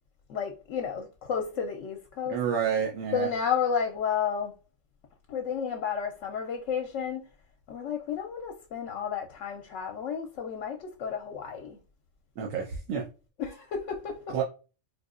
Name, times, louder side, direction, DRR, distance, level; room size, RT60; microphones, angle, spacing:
voice 1, 0.3-2.4 3.1-4.5 5.3-7.2 7.7-11.8 13.4-14.3, left 7 dB, 75° left, 0.9 m, -32 dB
voice 2, 2.3-3.3 12.4-13.0 14.3-14.4, right 7 dB, 90° right, 1.2 m, -29 dB
4.2 x 2.7 x 2.5 m
omnidirectional pair, 1.3 m